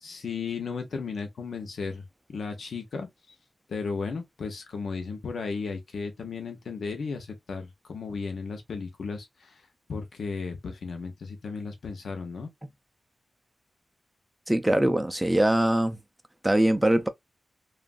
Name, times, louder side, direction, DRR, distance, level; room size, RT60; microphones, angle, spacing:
voice 1, 0.0-2.0 2.3-3.1 3.7-9.6 9.9-12.5, left 4 dB, 80° left, 0.8 m, -35 dB
voice 2, 14.5-16.0 16.4-17.1, right 1 dB, 10° right, 0.4 m, -22 dB
3.1 x 2.4 x 2.3 m
wide cardioid pair, 105°, 0 cm